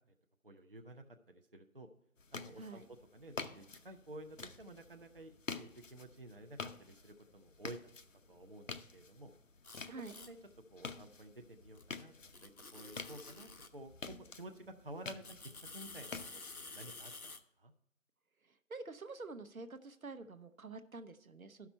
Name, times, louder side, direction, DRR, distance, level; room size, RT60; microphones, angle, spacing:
voice 1, 0.4-1.9 2.3-7.8 8.3-9.3 10.2-10.4 10.7-12.1 12.4-15.2 15.7-17.3 17.6-17.7, right 1 dB, 40° right, 4 dB, 0.6 m, -52 dB
sound 1, 2.2-17.0, left 4 dB, 65° left, 0.7 m, -49 dB
sound 2, 9.6-10.3 11.7-11.8 12.3-13.7 15.2-17.4, left 3 dB, 85° left, 1.1 m, -50 dB
voice 2, 18.4-21.7, right 3 dB, 75° right, 11 dB, 0.9 m, -48 dB
11.5 x 5.9 x 4.3 m, 0.81 s
figure-of-eight pair, 165°, 42 cm